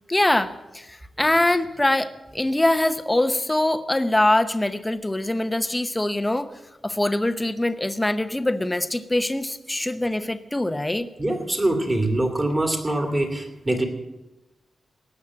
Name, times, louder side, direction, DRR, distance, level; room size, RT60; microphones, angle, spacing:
voice 1, 0.1-6.5 6.8-11.1, left 1 dB, 15° left, 11 dB, 0.8 m, -23 dB
voice 2, 11.2-13.8, right 1 dB, 20° right, 4 dB, 2.4 m, -24 dB
18.0 x 7.4 x 7.5 m, 1.0 s
wide cardioid pair, 115°, 0 cm